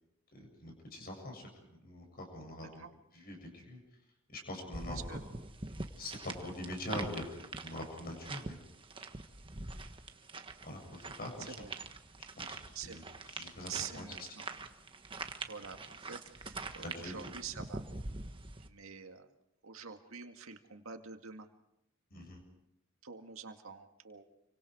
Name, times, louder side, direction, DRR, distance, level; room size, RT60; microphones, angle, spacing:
voice 1, 0.3-2.8 3.1-3.8 4.3-5.0 6.0-8.6 10.6-11.7 12.4-13.0 13.3-14.1 16.8-17.1 22.1-22.4, left 1 dB, 45° left, 2 dB, 7.4 m, -44 dB
sound 1, 4.7-18.7, right 3 dB, 25° right, 1.4 m, -44 dB
voice 2, 4.9-5.2 11.5-11.7 12.7-13.0 13.7-14.5 15.5-17.8 18.6-19.3 19.6-21.5 23.0-24.3, right 6 dB, 70° right, 5 dB, 2.1 m, -46 dB
29.5 x 24.5 x 4.8 m, 0.83 s
head